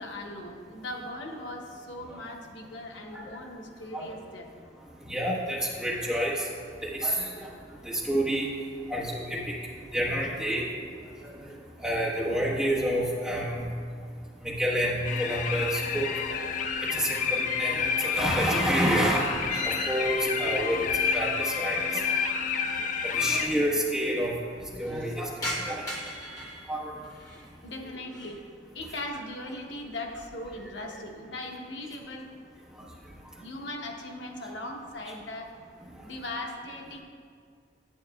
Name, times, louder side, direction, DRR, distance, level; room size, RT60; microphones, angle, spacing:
voice 1, 0.0-4.5 11.1-11.2 24.8-25.1 26.5-26.6 27.3-28.5 28.7-32.3 33.4-35.6 36.0-37.0, left 1 dB, 75° left, 1 dB, 0.9 m, -39 dB
voice 2, 5.1-6.3 6.9-7.5 8.1-8.5 8.9-9.4 9.9-10.6 11.8-13.6 14.4-16.1 16.9-19.3 19.9-20.8 21.1-22.0 23.1-24.3 24.8-25.3 25.6-25.8 26.7-26.9, equal, 5° right, -6 dB, 1.1 m, -28 dB
sound 1, 15.0-23.5, left 6 dB, 40° left, 0.3 m, -29 dB
sound 2, 16.3-17.1 17.4-21.5 21.8-21.9 22.8-22.9 23.0-23.1 23.4-23.9 24.3-27.5 27.9-28.4 28.9-29.3 29.7-30.6, left 1 dB, 20° left, 0.9 m, -41 dB
9.5 x 8.2 x 2.3 m, 2.1 s
head